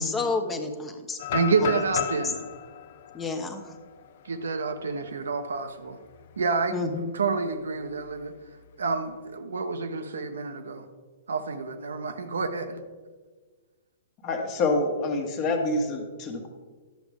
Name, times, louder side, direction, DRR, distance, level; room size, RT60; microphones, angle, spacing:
voice 1, 0.0-1.2 1.6-1.8 3.1-3.6 6.7-7.1, left 3 dB, 15° left, 6 dB, 0.9 m, -30 dB
sound 1, 1.2-5.1 5.5-5.6 6.1-6.4 7.8-8.6, left 10 dB, 55° left, 0.5 m, -35 dB
voice 2, 1.3-2.4 4.2-6.0 6.4-8.3 8.8-10.9 11.3-12.8, right 4 dB, 70° right, 8 dB, 0.8 m, -28 dB
voice 3, 14.2-16.5, left 2 dB, 35° left, 4 dB, 1.3 m, -27 dB
11.5 x 7.0 x 3.5 m, 1.4 s
figure-of-eight pair, 115°, 0 cm